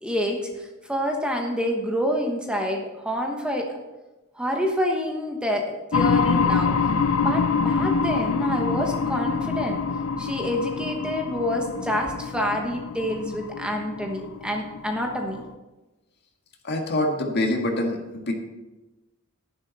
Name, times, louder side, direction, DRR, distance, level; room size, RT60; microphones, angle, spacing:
voice 1, 0.0-3.8 4.3-6.7 7.1-9.8 10.2-15.4, equal, 5° right, 1 dB, 1.1 m, -27 dB
sound 1, 5.9-15.5, left 5 dB, 75° left, 0.5 m, -25 dB
voice 2, 16.6-18.3, left 1 dB, 50° left, 2 dB, 1.8 m, -25 dB
11.0 x 11.0 x 4.1 m, 1.1 s
head